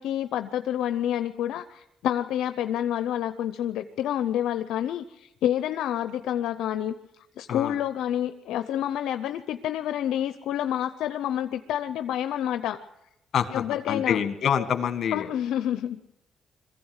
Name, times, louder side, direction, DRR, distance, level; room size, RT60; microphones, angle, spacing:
voice 1, 0.0-6.9 7.4-12.8 13.5-14.2 15.1-16.0, left 11 dB, 85° left, 9 dB, 0.6 m, -28 dB
voice 2, 13.3-15.3, left 8 dB, 60° left, 8 dB, 1.9 m, -26 dB
22.5 x 15.5 x 8.0 m, 0.91 s
cardioid pair, 90°, 0 cm